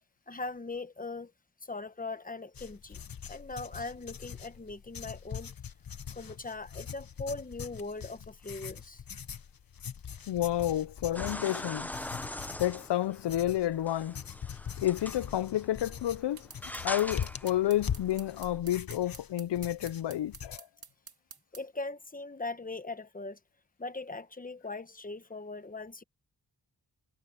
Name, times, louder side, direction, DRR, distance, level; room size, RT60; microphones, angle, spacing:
voice 1, 0.3-1.3 1.6-3.0 3.3-5.5 6.1-9.0 21.5-23.4 23.8-26.0, left 3 dB, 20° left, 1.1 m, -40 dB
sound 1, 2.5-20.6, left 8 dB, 55° left, 1.0 m, -42 dB
voice 2, 10.3-11.9 12.6-14.2 14.8-16.5 16.8-20.7, left 13 dB, 85° left, 0.5 m, -30 dB
sound 2, 11.1-18.6, left 1 dB, 5° left, 0.7 m, -43 dB
sound 3, 16.4-21.6, right 5 dB, 60° right, 2.4 m, -50 dB
wide cardioid pair, 120°, 41 cm